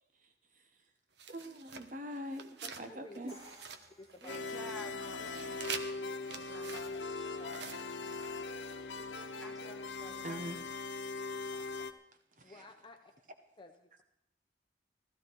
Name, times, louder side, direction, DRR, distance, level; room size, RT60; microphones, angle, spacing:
voice 1, 0.2-0.7 1.3-3.4 10.2-10.6 12.4-12.6, equal, 45° right, 6 dB, 1.1 m, -43 dB
sound 1, 1.2-2.9 3.1-4.8 5.1-8.3, right 6 dB, 70° right, 1.2 m, -47 dB
voice 2, 2.6-3.3 4.0-4.7 5.2-5.6 7.4-7.7 9.0-9.6 11.5-13.1 13.6-14.1, left 2 dB, 25° left, 4 dB, 0.9 m, -55 dB
Crash cymbal, 3.3-5.2, equal, 30° right, 5.8 m, -58 dB
voice 3, 4.2-6.8 9.4-10.6, left 1 dB, ahead, -2 dB, 3.0 m, -51 dB
sound 2, 4.3-11.9, left 3 dB, 80° left, 1.0 m, -40 dB
16.0 x 14.0 x 4.7 m, 0.81 s
head